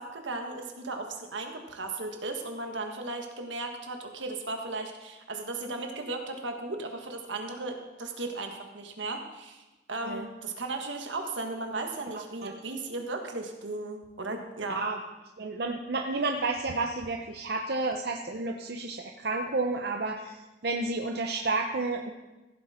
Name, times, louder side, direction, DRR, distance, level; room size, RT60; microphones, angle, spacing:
voice 1, 0.0-14.8, right 2 dB, 80° right, 3 dB, 1.6 m, -36 dB
voice 2, 15.4-22.1, right 3 dB, 55° right, 2 dB, 0.7 m, -31 dB
15.0 x 7.9 x 4.3 m, 1.1 s
head